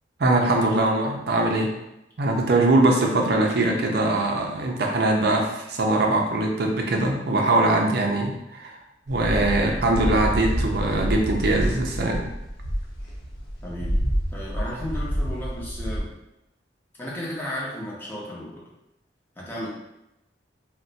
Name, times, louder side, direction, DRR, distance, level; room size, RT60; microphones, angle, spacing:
voice 1, 0.2-1.8 2.2-8.8 9.1-12.2, right 2 dB, 55° right, 1 dB, 0.5 m, -22 dB
sound 1, 9.1-16.0, equal, 55° left, 0.8 m, -28 dB
voice 2, 13.6-14.0 14.3-16.1 17.0-18.6 19.4-19.7, left 1 dB, 10° left, -5 dB, 0.7 m, -34 dB
2.6 x 2.1 x 3.9 m, 0.88 s
head